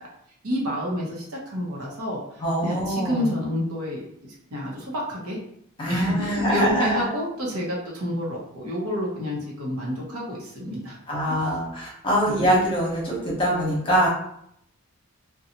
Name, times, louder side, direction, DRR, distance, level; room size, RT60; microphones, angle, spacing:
voice 1, 0.4-5.4 5.8-11.0 11.3-11.5 12.2-12.4, equal, 85° right, -3 dB, 0.9 m, -29 dB
voice 2, 2.4-3.2 5.8-7.0 11.1-14.1, equal, 25° left, -5 dB, 0.9 m, -23 dB
2.6 x 2.3 x 2.8 m, 0.71 s
head